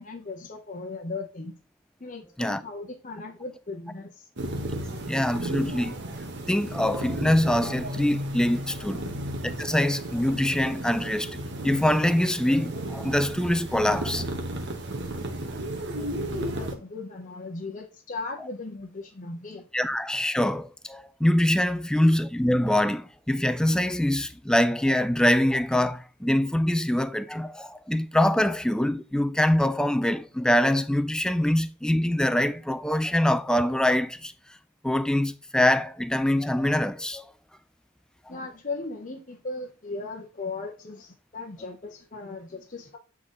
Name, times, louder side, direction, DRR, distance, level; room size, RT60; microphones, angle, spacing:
voice 1, 0.0-1.6 2.0-4.3 9.0-9.3 16.0-19.7 21.9-22.2 38.3-43.0, left 3 dB, 35° left, 0.8 m, -37 dB
sound 1, 4.4-16.7, right 1 dB, 55° right, 1.2 m, -34 dB
voice 2, 5.1-5.9 6.5-9.0 9.6-14.3 19.7-34.3 34.8-37.2, left 1 dB, 5° left, 0.3 m, -24 dB
8.2 x 3.8 x 3.8 m
head